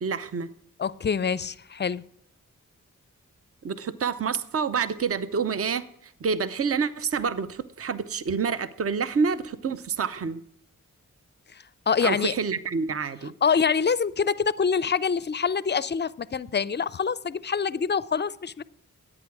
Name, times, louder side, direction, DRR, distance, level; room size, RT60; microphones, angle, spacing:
voice 1, 0.0-0.5 3.6-10.4 12.0-13.3, right 5 dB, 45° right, 0.6 m, -28 dB
voice 2, 0.8-2.0 11.5-12.3 13.4-18.6, left 6 dB, 35° left, 0.4 m, -25 dB
11.0 x 8.6 x 4.7 m
cardioid pair, 45°, 33 cm